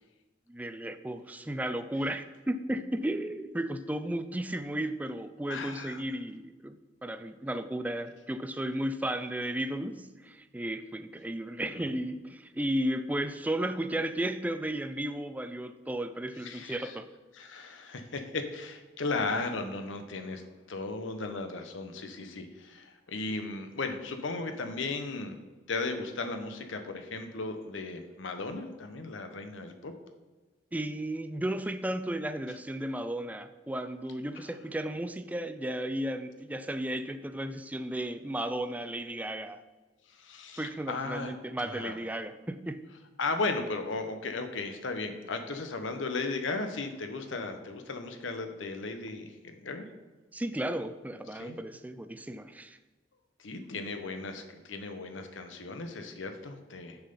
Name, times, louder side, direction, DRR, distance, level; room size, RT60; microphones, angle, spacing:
voice 1, 0.5-17.1 30.7-39.6 40.6-42.8 50.3-52.8, right 1 dB, 10° right, 10 dB, 0.3 m, -34 dB
voice 2, 5.5-6.0 16.4-16.9 17.3-25.3 25.7-29.9 40.1-41.3 41.6-42.0 43.2-49.9 51.3-51.6 53.4-57.0, left 3 dB, 80° left, 7 dB, 0.8 m, -36 dB
7.0 x 5.6 x 5.4 m, 1.2 s
head